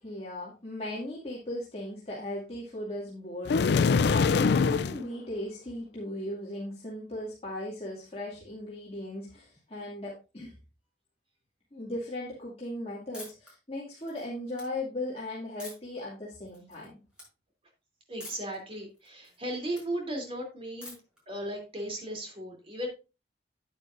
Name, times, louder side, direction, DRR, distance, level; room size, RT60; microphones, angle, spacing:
voice 1, 0.0-10.5 11.7-17.0, left 1 dB, 35° left, -6 dB, 2.3 m, -38 dB
sound 1, 3.5-5.0, left 5 dB, 65° left, 0.4 m, -23 dB
sound 2, 13.1-13.5 14.0-14.6 15.6-16.0 16.5-16.9 17.1-17.3 18.2-18.6 18.9-19.8 20.8-21.2, left 1 dB, 5° right, 5.7 m, -46 dB
voice 2, 18.1-20.9 21.3-22.9, right 1 dB, 35° right, 1 dB, 2.9 m, -36 dB
9.5 x 9.4 x 2.5 m, 0.29 s
head